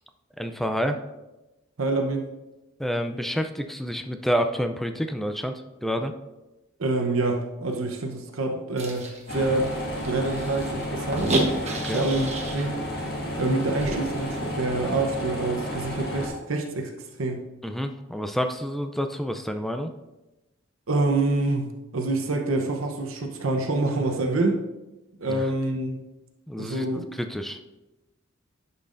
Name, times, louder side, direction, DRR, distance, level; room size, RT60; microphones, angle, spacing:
voice 1, 0.4-1.0 2.8-6.1 11.8-12.1 17.6-19.9 25.3-25.4 26.5-27.6, equal, ahead, 7 dB, 0.3 m, -28 dB
voice 2, 1.8-2.3 6.8-9.1 9.3-9.8 10.0-11.3 11.9-12.8 13.4-17.5 20.9-24.6 25.2-26.0 26.6-27.1, right 2 dB, 70° right, 3 dB, 0.8 m, -26 dB
sound 1, 8.8-12.7 13.0-13.1 13.4-14.4, right 2 dB, 35° right, 1.1 m, -31 dB
sound 2, 9.3-16.3, equal, 55° left, 1.6 m, -32 dB
10.5 x 5.6 x 2.5 m, 1.0 s
head